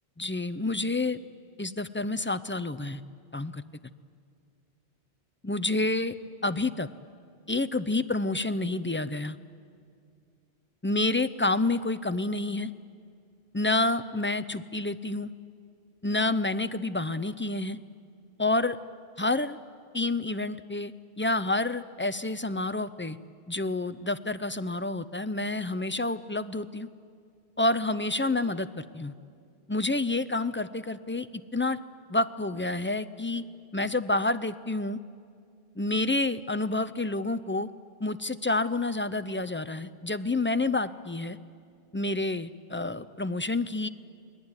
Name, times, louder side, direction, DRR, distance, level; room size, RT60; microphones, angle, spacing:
voice 1, 0.2-1.2 1.6-3.0 3.3-3.6 5.4-6.1 6.4-6.9 7.5-9.4 10.8-12.7 13.5-15.3 16.0-17.8 18.4-18.8 19.2-19.6 19.9-23.2 23.5-26.9 27.6-29.1 29.7-31.8 32.1-33.4 33.7-35.0 35.8-37.7 38.0-41.4 41.9-43.9, left 2 dB, 15° left, 12 dB, 0.4 m, -29 dB
29.0 x 19.5 x 9.7 m, 2.3 s
omnidirectional pair, 1.1 m